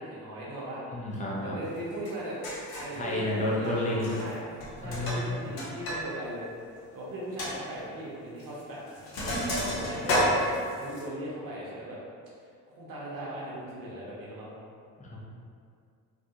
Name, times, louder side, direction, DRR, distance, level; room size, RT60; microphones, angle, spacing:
voice 1, 0.0-0.8 1.4-4.4 4.8-6.5 6.9-12.0 12.8-14.6, right 1 dB, 45° right, -6 dB, 0.9 m, -38 dB
voice 2, 0.9-1.6 2.9-4.1 4.8-5.5 15.0-15.2, left 1 dB, 15° left, -4 dB, 0.6 m, -30 dB
Sink (filling or washing), 2.0-2.1 2.4-3.0 3.9-4.3 4.6-6.0 6.3-6.4 6.8-6.9 7.4-7.5 8.4-8.6 8.9-11.0, equal, 50° left, 0.8 m, -30 dB
2.3 x 2.2 x 2.8 m, 2.2 s
hypercardioid pair, 55°, 48 cm